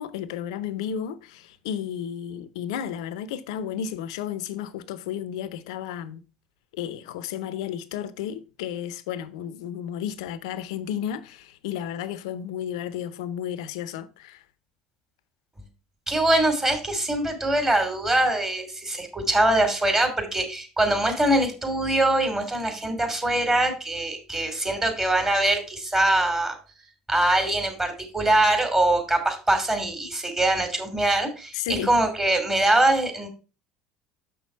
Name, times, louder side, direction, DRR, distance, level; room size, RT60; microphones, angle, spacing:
voice 1, 0.0-6.2 6.7-14.4 31.5-31.9, left 9 dB, 75° left, 0.7 m, -33 dB
voice 2, 16.1-26.6 27.1-33.3, right 1 dB, 20° right, 2.8 m, -23 dB
6.5 x 6.2 x 4.5 m
hypercardioid pair, 70°, 3 cm